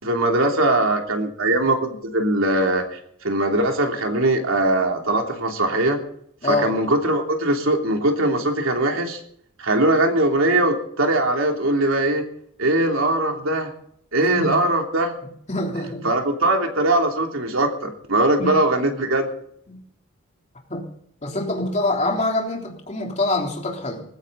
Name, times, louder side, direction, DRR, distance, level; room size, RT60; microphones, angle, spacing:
voice 1, 0.0-6.0 6.4-9.2 9.6-12.2 12.6-13.7 14.1-15.2 16.0-19.3, right 1 dB, 80° right, 2 dB, 3.1 m, -21 dB
voice 2, 15.5-16.1 18.4-18.6 19.7-19.8 20.7-20.9 21.2-24.0, left 2 dB, 35° left, 0 dB, 3.5 m, -25 dB
20.0 x 15.5 x 4.1 m, 0.68 s
head